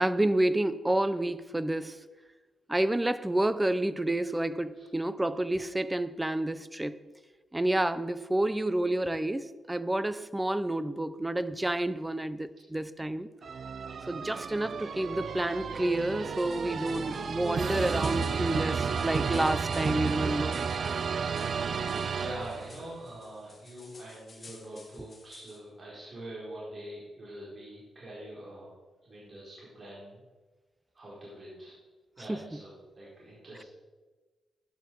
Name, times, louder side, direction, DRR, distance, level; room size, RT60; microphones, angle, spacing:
voice 1, 0.0-2.0 2.7-7.0 7.5-13.3 14.0-20.6 32.3-32.6, right 1 dB, 15° right, 0.7 m, -29 dB
sound 1, 13.4-22.9, right 6 dB, 60° right, 0.6 m, -32 dB
sound 2, 16.3-25.6, left 3 dB, 45° left, 2.4 m, -54 dB
voice 2, 22.1-28.7 29.0-30.2 30.9-31.7 32.2-33.6, right 1 dB, 40° right, 4.6 m, -44 dB
12.0 x 10.5 x 4.7 m
cardioid pair, 60°, 0 cm